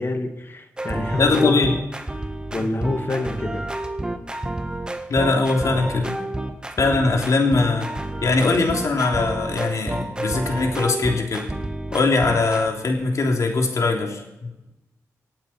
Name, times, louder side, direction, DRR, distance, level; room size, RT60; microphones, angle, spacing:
voice 1, 0.0-1.6 2.5-3.7, left 2 dB, 40° left, 6 dB, 2.2 m, -26 dB
sound 1, 0.8-12.7, right 1 dB, 15° right, 1.5 m, -30 dB
voice 2, 1.2-1.8 2.6-2.7 5.1-6.2 6.8-7.9 8.2-11.4 11.9-14.2, left 3 dB, 65° left, 2 dB, 3.3 m, -21 dB
26.0 x 8.8 x 4.5 m, 0.97 s
cardioid pair, 80°, 6 cm